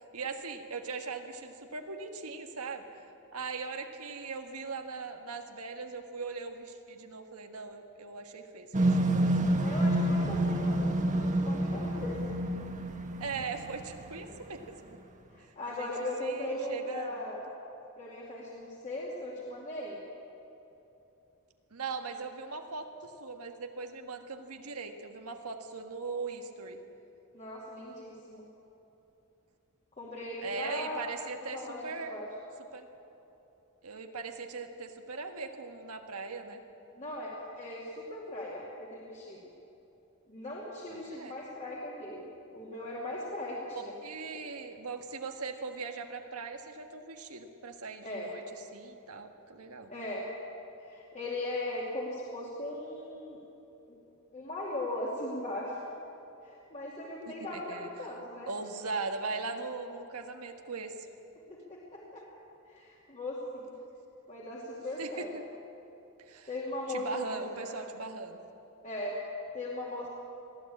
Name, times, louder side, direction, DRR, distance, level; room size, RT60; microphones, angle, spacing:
voice 1, 0.1-2.8 3.3-9.5 13.2-15.0 15.4-15.9 16.2-17.1 21.7-26.8 30.4-32.2 32.7-32.9 33.8-36.6 40.8-41.3 44.0-48.4 48.7-49.9 57.3-57.9 58.5-61.1 65.0-65.5 66.3-66.5 66.9-68.4, right 4 dB, 85° right, 5 dB, 1.6 m, -40 dB
sound 1, 8.7-14.0, right 1 dB, 35° right, 1.3 m, -28 dB
voice 2, 9.6-12.2 15.3-17.4 18.0-20.0 27.3-28.4 30.0-31.1 31.5-31.8 32.1-32.3 37.0-39.4 40.3-42.2 42.5-43.9 48.0-48.3 49.9-50.2 50.8-53.4 53.9-54.0 54.3-55.8 56.4-58.5 61.5-62.2 62.7-63.8 64.3-65.3 66.5-67.8 68.8-69.2 69.5-70.1, left 1 dB, 35° left, -5 dB, 2.6 m, -38 dB
21.5 x 14.5 x 8.6 m, 3.0 s
head